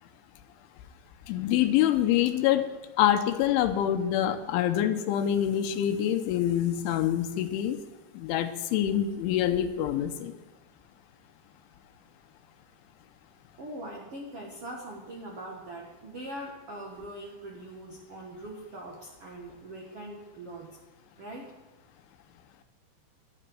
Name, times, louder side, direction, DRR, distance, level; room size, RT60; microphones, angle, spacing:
voice 1, 1.3-2.6 3.0-7.8 8.1-10.3, left 11 dB, 90° left, 8 dB, 3.3 m, -25 dB
voice 2, 13.6-20.8 21.2-21.5, right 1 dB, 70° right, -1 dB, 1.3 m, -42 dB
12.0 x 9.9 x 7.8 m, 1.2 s
omnidirectional pair, 5.4 m